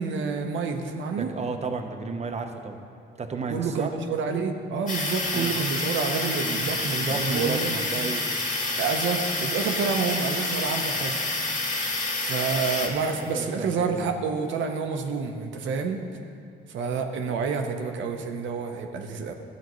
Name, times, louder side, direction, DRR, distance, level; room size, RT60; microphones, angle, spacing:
voice 1, 0.0-1.3 3.5-8.0 8.8-11.2 12.2-16.0 16.7-19.3, right 5 dB, 70° right, 4 dB, 0.8 m, -28 dB
voice 2, 1.1-2.8 3.2-3.9 5.3-5.6 7.1-8.3 13.1-14.1, right 4 dB, 35° right, 5 dB, 0.8 m, -32 dB
sound 1, 4.9-12.9, left 2 dB, 40° left, 2.0 m, -28 dB
sound 2, 6.4-13.4, left 3 dB, 85° left, 2.0 m, -49 dB
13.0 x 8.2 x 3.1 m, 2.4 s
cardioid pair, 90°, 20 cm